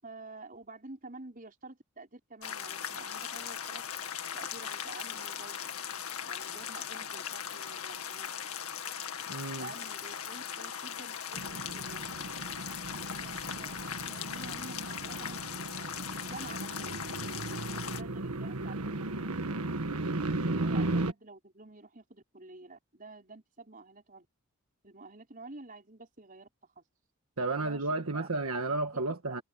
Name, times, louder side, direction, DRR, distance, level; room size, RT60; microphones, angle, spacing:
voice 1, 0.0-3.8 4.3-5.6 6.2-8.6 9.5-12.1 13.2-17.0 17.9-19.4 20.5-24.3 24.8-26.5 26.8-26.9 27.6-28.3, right 3 dB, 40° right, 5.6 m, -49 dB
sound 1, 2.4-18.0, left 8 dB, 75° left, 2.0 m, -39 dB
voice 2, 9.3-9.7 20.4-20.7 27.4-29.4, right 2 dB, 70° right, 1.5 m, -33 dB
sound 2, 11.3-21.1, right 2 dB, 90° right, 1.5 m, -35 dB
head